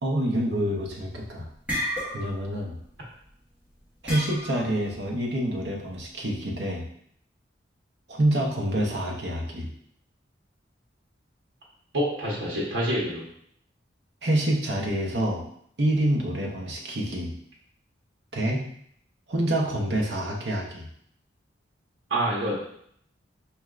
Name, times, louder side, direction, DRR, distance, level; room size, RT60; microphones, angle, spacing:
voice 1, 0.0-1.5 2.1-2.8 4.0-6.9 8.1-9.7 14.2-15.4 15.8-17.3 18.3-18.6 19.3-20.9, right 1 dB, 60° right, -1 dB, 0.8 m, -27 dB
sound 1, 0.8-1.1 1.4-2.5 2.8-3.1 4.1-4.8, equal, 5° right, 1.4 m, -31 dB
voice 2, 11.9-13.2 22.1-22.6, right 1 dB, 80° right, -5 dB, 1.1 m, -26 dB
4.3 x 3.2 x 2.4 m, 0.66 s
head